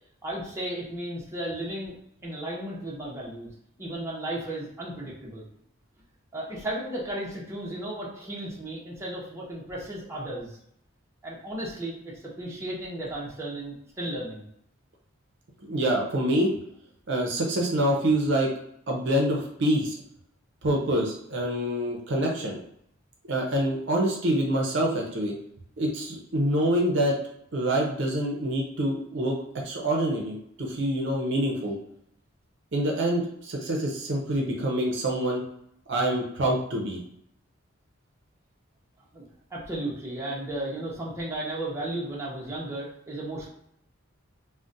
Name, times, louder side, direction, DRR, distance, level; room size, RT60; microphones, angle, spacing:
voice 1, 0.2-1.9 2.2-3.5 3.8-5.5 6.3-10.6 11.2-14.5 39.1-43.5, right 1 dB, 15° right, -5 dB, 0.7 m, -34 dB
voice 2, 15.6-16.5 17.1-18.5 18.9-20.0 20.6-22.6 23.3-25.3 25.8-27.1 27.5-29.4 29.6-31.8 32.7-35.4 35.9-37.0, right 1 dB, 55° right, -1 dB, 0.6 m, -26 dB
2.3 x 2.1 x 3.9 m, 0.72 s
head